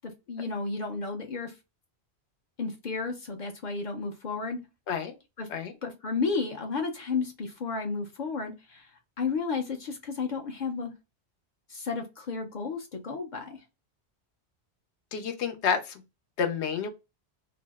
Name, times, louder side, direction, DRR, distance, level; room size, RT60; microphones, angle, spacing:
voice 1, 0.3-1.5 2.6-4.6 5.4-5.5 5.8-8.9 9.2-10.9 11.7-13.6, left 4 dB, 55° left, 0.6 m, -32 dB
voice 2, 15.1-16.0 16.4-16.9, left 6 dB, 80° left, 0.9 m, -29 dB
2.6 x 2.0 x 3.3 m
omnidirectional pair, 1.1 m